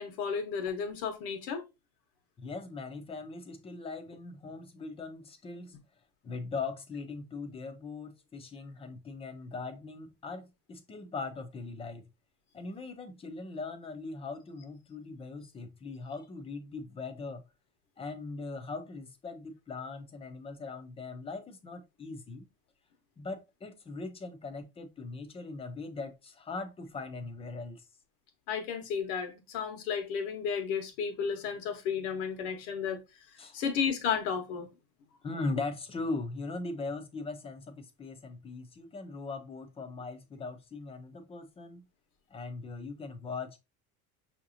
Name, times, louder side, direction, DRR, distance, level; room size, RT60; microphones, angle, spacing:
voice 1, 0.0-1.6 28.5-33.0 33.3-34.7, left 6 dB, 75° left, 1.1 m, -33 dB
voice 2, 2.4-5.8 6.2-12.1 12.5-17.4 18.0-22.5 23.2-27.8 33.4-33.6 35.2-41.8 42.3-43.6, left 3 dB, 20° left, 0.6 m, -40 dB
5.8 x 2.8 x 2.5 m
cardioid pair, 140°, 30 cm